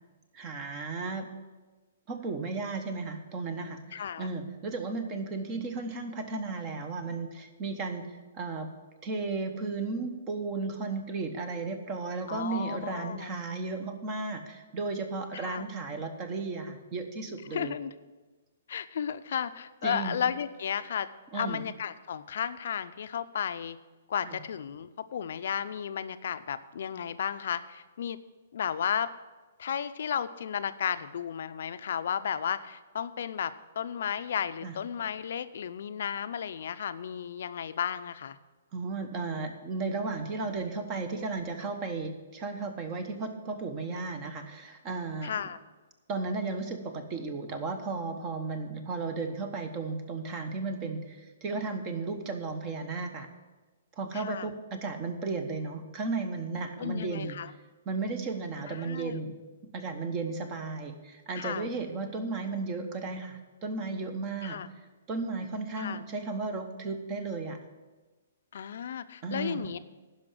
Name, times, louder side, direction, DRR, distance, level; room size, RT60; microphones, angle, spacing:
voice 1, 0.3-1.3 2.1-8.7 9.0-17.8 19.8-20.2 21.3-21.6 24.2-24.4 34.6-34.8 38.7-45.3 46.1-53.3 54.0-57.4 57.8-59.3 59.7-64.6 65.1-67.6 69.2-69.7, right 3 dB, 25° right, 7 dB, 1.1 m, -34 dB
voice 2, 3.9-4.3 12.3-13.3 15.3-15.6 17.5-17.9 18.7-21.1 21.3-23.8 24.1-28.2 28.5-29.1 29.6-38.4 45.2-45.6 54.1-54.5 56.8-57.5 58.7-59.2 61.3-61.7 64.4-64.7 65.8-66.0 68.5-69.8, left 8 dB, 65° left, 12 dB, 0.5 m, -33 dB
10.5 x 5.7 x 7.6 m, 1.2 s
hypercardioid pair, 150°, 0 cm